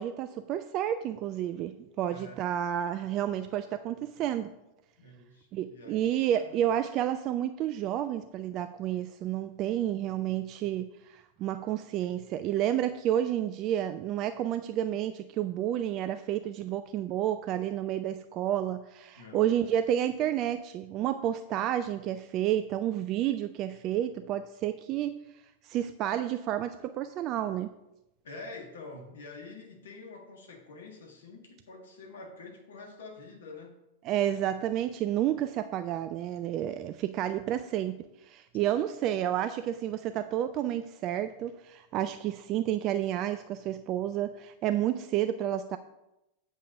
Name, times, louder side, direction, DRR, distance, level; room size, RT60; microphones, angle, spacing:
voice 1, 0.0-4.5 5.5-25.2 25.6-27.7 34.0-38.0 38.2-45.8, right 11 dB, 35° right, 11 dB, 0.3 m, -30 dB
voice 2, 2.1-2.4 5.0-6.1 6.3-6.7 19.1-19.5 28.2-33.7, left 3 dB, 65° left, 2 dB, 1.5 m, -47 dB
8.3 x 5.5 x 4.9 m, 0.91 s
figure-of-eight pair, 90°, 0 cm